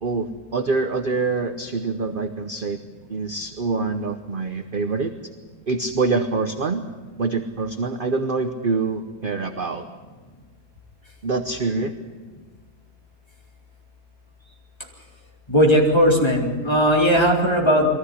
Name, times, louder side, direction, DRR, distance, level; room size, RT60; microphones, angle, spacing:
voice 1, 0.0-2.8 3.1-5.1 5.7-6.8 7.2-9.8 11.2-11.9, right 3 dB, 40° right, 7 dB, 0.9 m, -25 dB
voice 2, 15.5-17.9, equal, 15° left, -1 dB, 3.9 m, -17 dB
22.5 x 15.0 x 9.8 m, 1.4 s
omnidirectional pair, 1.8 m